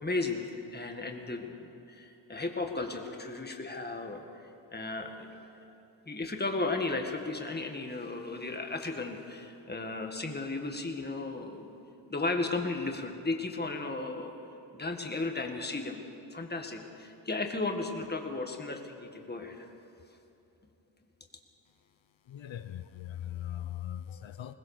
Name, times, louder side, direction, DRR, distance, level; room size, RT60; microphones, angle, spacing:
voice 1, 0.0-4.2 4.7-5.3 6.1-11.8 12.1-14.3 14.7-16.0 16.3-19.7, left 3 dB, 20° left, 3 dB, 1.8 m, -35 dB
voice 2, 22.3-24.5, left 11 dB, 85° left, 10 dB, 0.8 m, -40 dB
21.5 x 19.5 x 6.7 m, 2.9 s
wide cardioid pair, 135°, 45 cm